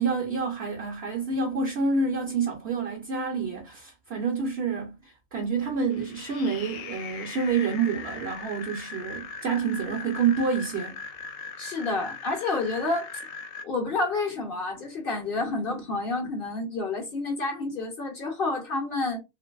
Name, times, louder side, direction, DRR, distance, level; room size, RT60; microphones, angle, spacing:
voice 1, 0.0-11.0, right 5 dB, 55° right, 0.8 m, -28 dB
sound 1, 5.9-13.6, left 5 dB, 75° left, 1.0 m, -40 dB
voice 2, 11.6-13.1 13.6-19.2, left 3 dB, 50° left, 0.7 m, -29 dB
2.9 x 2.6 x 2.3 m
omnidirectional pair, 1.5 m